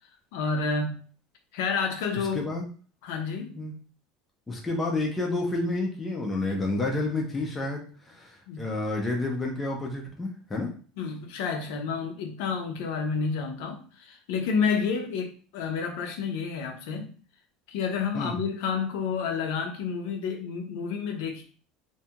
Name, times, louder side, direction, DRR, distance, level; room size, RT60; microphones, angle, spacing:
voice 1, 0.3-1.0 1.5-2.5 3.0-3.6 8.5-8.7 11.0-17.1 17.7-21.4, left 5 dB, 60° left, 4 dB, 0.5 m, -30 dB
voice 2, 2.3-2.7 3.6-3.7 4.5-10.7 18.1-18.4, left 2 dB, 10° left, -1 dB, 0.4 m, -30 dB
2.6 x 2.3 x 2.8 m, 0.41 s
cardioid pair, 180°, 0 cm